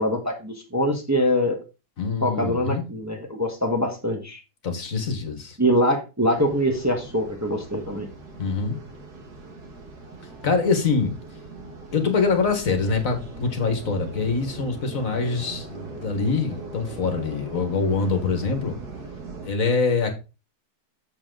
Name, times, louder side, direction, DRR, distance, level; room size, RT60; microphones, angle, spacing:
voice 1, 0.0-1.6 2.2-4.4 5.6-8.1, equal, 10° right, 1.3 m, -23 dB
voice 2, 2.0-2.8 4.6-5.6 8.4-8.8 10.4-11.1 11.9-18.8 19.4-20.1, left 4 dB, 60° left, 1.9 m, -24 dB
sound 1, 6.3-19.5, right 3 dB, 85° right, 2.3 m, -40 dB
7.5 x 7.2 x 3.8 m
omnidirectional pair, 1.7 m